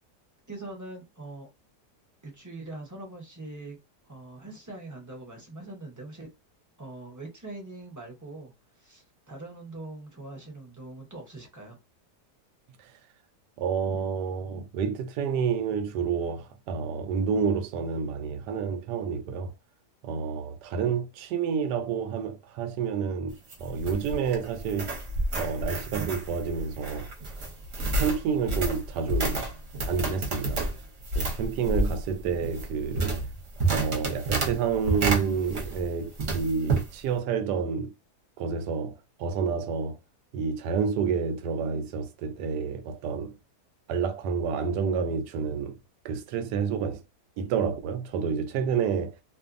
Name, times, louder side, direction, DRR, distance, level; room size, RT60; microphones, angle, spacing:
voice 1, 0.5-1.5 2.2-3.8 4.0-6.3 6.8-8.5 8.8-11.8, right 2 dB, 20° right, 0.5 m, -42 dB
voice 2, 13.6-19.5 20.0-24.9 25.3-27.1 27.8-29.5 29.8-30.6 31.2-33.2 33.7-37.9 38.4-40.0 40.3-43.4 43.9-45.8 46.0-47.0 47.4-49.2, right 6 dB, 85° right, 1.2 m, -29 dB
sound 1, 23.3-35.9 36.2-36.9, right 2 dB, 50° right, 1.0 m, -30 dB
2.6 x 2.5 x 2.4 m
omnidirectional pair, 1.7 m